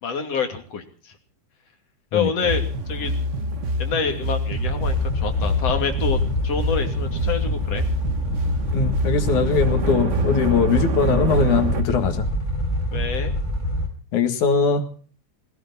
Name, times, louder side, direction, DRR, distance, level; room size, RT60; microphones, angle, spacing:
voice 1, 0.0-1.1 2.1-3.1 3.8-7.8 12.9-13.3, left 5 dB, 55° left, 5 dB, 3.7 m, -27 dB
sound 1, 2.5-11.8, equal, 70° right, 0.7 m, -26 dB
sound 2, 4.5-13.9, left 1 dB, 15° left, 4.8 m, -26 dB
voice 2, 8.7-12.3 14.1-14.9, left 6 dB, 70° left, 7 dB, 3.4 m, -21 dB
20.0 x 17.0 x 4.2 m, 0.42 s
omnidirectional pair, 3.5 m